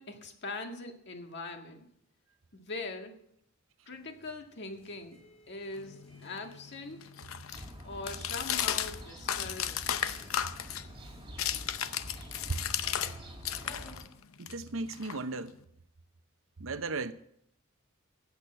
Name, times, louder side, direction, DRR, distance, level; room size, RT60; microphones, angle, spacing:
voice 1, 0.0-1.9 2.5-3.2 3.9-5.2 5.5-7.1 7.8-10.0, left 3 dB, 55° left, 1.9 m, -42 dB
sound 1, 3.9-13.9, left 1 dB, 30° left, 5.6 m, -57 dB
sound 2, 5.8-13.2 13.4-15.6, left 10 dB, 80° left, 0.7 m, -35 dB
sound 3, 7.5-14.1, equal, 25° right, 2.0 m, -48 dB
voice 2, 14.4-15.6 16.6-17.1, right 3 dB, 70° right, 0.8 m, -35 dB
14.5 x 8.5 x 7.6 m
head